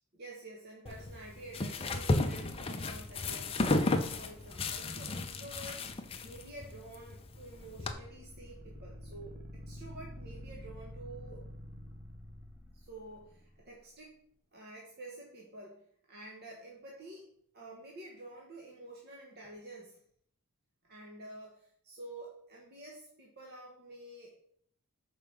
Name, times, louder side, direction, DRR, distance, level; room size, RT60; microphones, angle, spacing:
voice 1, 0.1-9.4 9.7-11.4 12.7-14.2 14.5-20.0 20.9-24.3, right 2 dB, 45° right, -2 dB, 1.2 m, -49 dB
sound 1, 0.9-7.9, left 2 dB, 25° left, 0.5 m, -34 dB
sound 2, 7.5-13.7, equal, 10° right, 0.8 m, -48 dB
6.8 x 4.6 x 5.1 m, 0.64 s
head